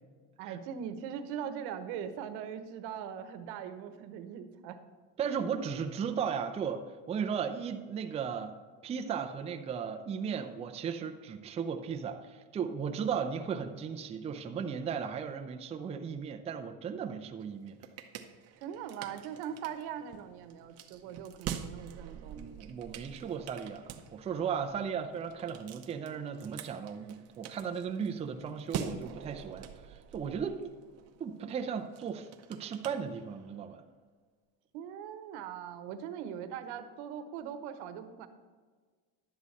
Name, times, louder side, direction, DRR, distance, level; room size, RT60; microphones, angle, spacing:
voice 1, 0.4-4.8 18.6-22.5 34.7-38.3, right 8 dB, 85° right, 8 dB, 1.0 m, -41 dB
voice 2, 5.2-8.5 8.8-17.7 22.1-23.8 24.1-30.7 31.2-33.8, right 7 dB, 20° right, 5 dB, 0.4 m, -36 dB
sound 1, 17.4-33.6, right 8 dB, 45° right, 0.7 m, -46 dB
11.0 x 8.1 x 4.1 m, 1.5 s
cardioid pair, 165°, 37 cm